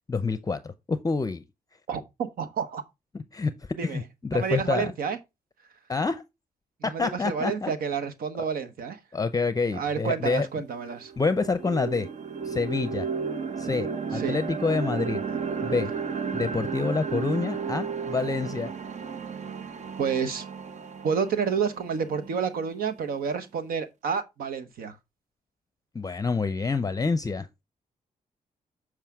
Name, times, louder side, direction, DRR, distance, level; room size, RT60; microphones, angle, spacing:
voice 1, 0.1-1.4 3.1-3.5 3.8-4.9 5.9-6.2 6.8-7.7 8.4-8.5 9.1-10.5 11.2-12.1 12.4-13.1 13.6-15.2 15.6-15.9 16.3-18.7 25.9-27.5, left 4 dB, 25° left, 0.6 m, -27 dB
voice 2, 1.9-2.8 3.8-4.0 4.3-5.2 6.8-9.0 9.7-11.1 14.1-14.4 20.0-20.4 21.0-25.0, right 6 dB, 80° right, 1.0 m, -29 dB
sound 1, 10.3-10.4 10.8-22.9, right 6 dB, 55° right, 0.7 m, -33 dB
7.5 x 4.8 x 3.5 m
cardioid pair, 65°, 15 cm